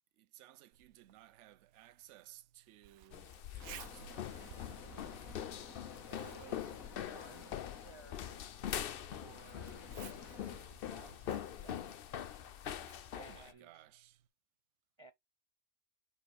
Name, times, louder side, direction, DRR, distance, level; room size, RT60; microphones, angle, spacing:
voice 1, 0.2-4.8 13.1-14.2, right 13 dB, 65° right, 0.9 m, -59 dB
Zipper (clothing), 0.7-14.3, right 11 dB, 85° right, 1.1 m, -59 dB
sound 1, 3.1-13.5, left 10 dB, 55° left, 0.6 m, -43 dB
sound 2, 3.6-10.6, left 5 dB, 75° left, 1.8 m, -54 dB
voice 2, 6.1-8.8 9.1-9.9 10.4-12.0 13.1-13.9 15.0-15.1, right 3 dB, 45° right, 0.3 m, -58 dB
5.4 x 4.4 x 4.7 m
omnidirectional pair, 1.5 m